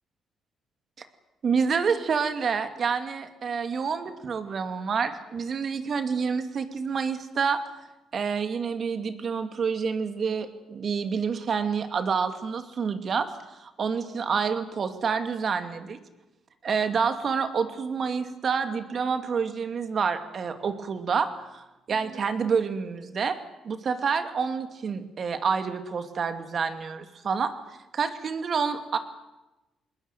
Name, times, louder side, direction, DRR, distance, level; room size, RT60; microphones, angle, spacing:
voice 1, 1.4-7.6 8.1-16.0 16.6-23.4 23.6-27.5 27.9-29.0, right 6 dB, 50° right, 9 dB, 2.5 m, -28 dB
20.5 x 20.5 x 9.3 m, 1.0 s
cardioid pair, 90°, 0 cm